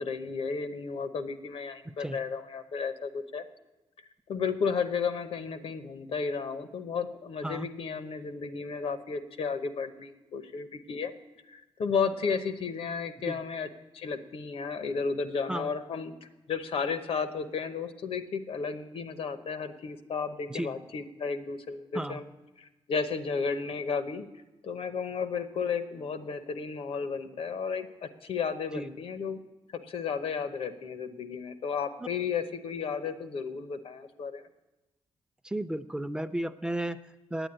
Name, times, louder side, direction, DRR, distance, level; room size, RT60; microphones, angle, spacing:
voice 1, 0.0-3.4 4.3-11.1 11.5-13.7 13.9-16.1 16.5-22.2 22.6-24.3 24.6-29.4 29.8-34.4, left 5 dB, 75° left, 9 dB, 0.9 m, -33 dB
voice 2, 35.4-37.5, right 1 dB, 10° right, 12 dB, 0.6 m, -34 dB
9.1 x 9.1 x 8.9 m, 1.1 s
cardioid pair, 80°, 10 cm